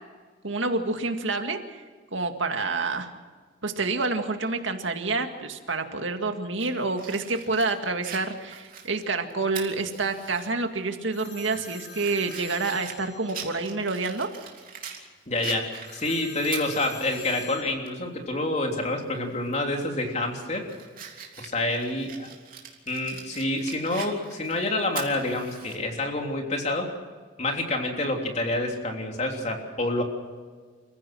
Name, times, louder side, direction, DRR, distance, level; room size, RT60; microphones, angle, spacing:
voice 1, 0.4-1.6 2.1-3.1 3.6-14.3, right 3 dB, 85° right, 5 dB, 2.1 m, -28 dB
Fire, 6.6-10.5 10.9-11.0 11.5-15.0 15.4-17.5 17.9-18.0 19.4-19.7 20.2-25.8, right 7 dB, 50° right, 3.3 m, -42 dB
sound 1, 11.1-13.7 15.8-17.6, left 5 dB, 60° left, 3.0 m, -45 dB
voice 2, 15.3-20.7 21.4-22.3 22.9-26.9 27.4-30.0, left 2 dB, 35° left, 2 dB, 3.3 m, -28 dB
29.0 x 15.5 x 6.2 m, 1.5 s
head